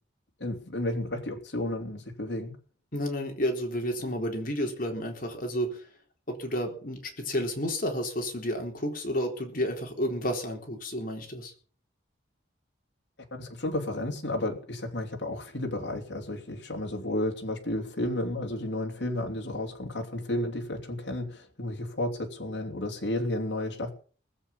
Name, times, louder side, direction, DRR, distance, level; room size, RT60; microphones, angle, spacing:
voice 1, 0.4-2.6 13.3-23.9, left 1 dB, 65° left, 2 dB, 3.1 m, -32 dB
voice 2, 2.9-5.9 6.3-11.5, equal, 50° left, 2 dB, 4.0 m, -31 dB
19.5 x 8.5 x 7.1 m, 0.43 s
head